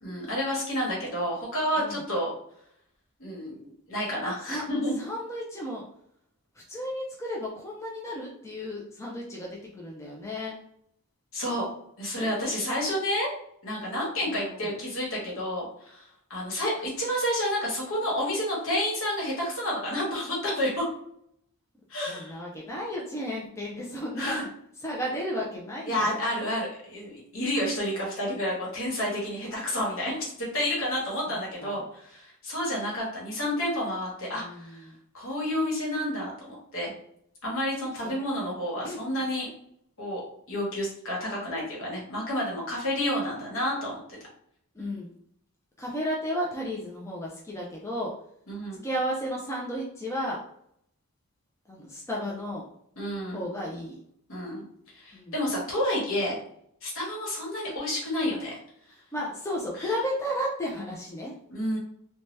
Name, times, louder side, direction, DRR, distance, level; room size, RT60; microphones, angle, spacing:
voice 1, 0.0-2.3 3.2-3.6 3.9-5.0 11.3-11.7 12.0-13.3 13.6-16.7 17.0-20.8 21.9-22.4 24.2-24.5 25.9-34.8 35.1-36.9 37.4-39.5 40.0-40.2 40.5-44.2 48.5-48.8 53.0-53.5 54.3-54.6 54.9-56.4 56.8-58.6 59.8-59.9 61.5-61.8, left 1 dB, 60° left, -3 dB, 1.2 m, -30 dB
voice 2, 5.0-5.9 6.7-10.5 14.2-14.8 22.1-24.4 24.8-26.1 31.3-31.8 34.4-34.9 38.0-38.2 38.8-39.0 44.8-45.1 45.8-48.1 48.8-50.4 51.7-52.6 53.3-54.0 55.1-55.4 59.1-61.3, equal, 10° left, -3 dB, 0.4 m, -33 dB
2.7 x 2.2 x 3.1 m, 0.70 s
head